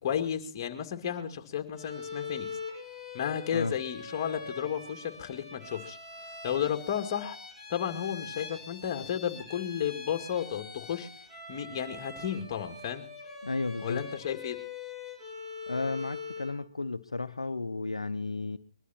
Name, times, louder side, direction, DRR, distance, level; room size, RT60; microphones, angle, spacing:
voice 1, 0.0-2.6 3.1-6.0 6.4-7.4 7.7-11.1 11.5-13.0 13.8-14.6, left 9 dB, 35° left, 2.2 m, -33 dB
Bowed string instrument, 1.7-16.6, left 4 dB, 5° right, 6.8 m, -43 dB
voice 2, 13.4-14.0 15.7-18.6, left 3 dB, 85° left, 0.8 m, -33 dB
21.5 x 12.5 x 4.3 m
figure-of-eight pair, 145°, 3 cm